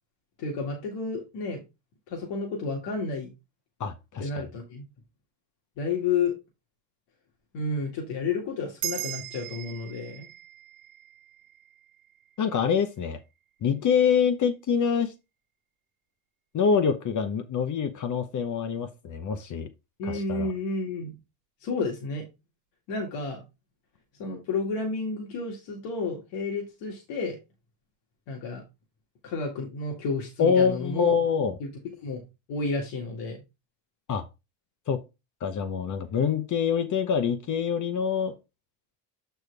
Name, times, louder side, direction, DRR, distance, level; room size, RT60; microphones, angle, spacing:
voice 1, 0.4-1.6 2.1-3.3 4.2-4.9 5.8-6.3 7.5-10.3 20.0-21.1 21.6-22.2 22.9-23.4 24.2-27.4 28.3-28.6 29.2-31.1 31.6-31.7 32.0-32.2 32.5-33.4, left 4 dB, 85° left, 2.0 m, -31 dB
voice 2, 3.8-4.4 12.4-13.2 13.6-15.1 16.5-19.7 20.0-20.5 30.4-31.6 34.1-34.3 34.9-35.0 35.4-38.3, left 6 dB, 45° left, 0.9 m, -25 dB
sound 1, 8.8-13.5, right 16 dB, 85° right, 1.1 m, -40 dB
7.9 x 4.4 x 3.3 m
cardioid pair, 105°, 42 cm